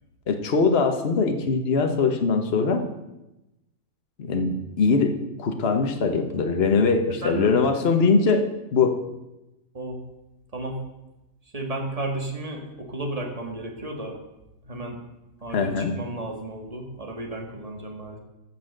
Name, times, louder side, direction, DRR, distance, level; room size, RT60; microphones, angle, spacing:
voice 1, 0.3-2.8 4.2-9.0 15.5-16.0, left 4 dB, 45° left, 6 dB, 1.3 m, -22 dB
voice 2, 7.1-7.6 9.7-10.0 10.5-10.8 11.5-14.2 14.6-15.0 15.4-18.2, right 2 dB, 25° right, 2 dB, 1.8 m, -33 dB
14.5 x 6.2 x 6.6 m, 0.97 s
omnidirectional pair, 1.6 m